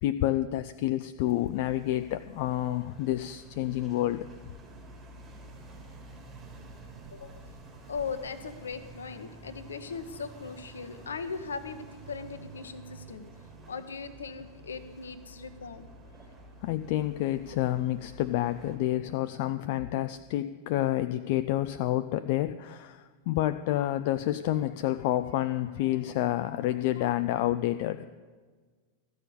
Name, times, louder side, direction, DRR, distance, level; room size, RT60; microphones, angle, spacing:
voice 1, 0.0-4.5 16.6-28.1, left 14 dB, 50° left, 10 dB, 0.4 m, -29 dB
sound 1, 1.2-18.8, right 2 dB, 20° right, 3.5 m, -49 dB
voice 2, 7.1-7.5 7.9-13.2 13.7-15.9, left 5 dB, 70° left, 11 dB, 0.9 m, -39 dB
13.5 x 6.6 x 8.5 m, 1.4 s
figure-of-eight pair, 90°, 0 cm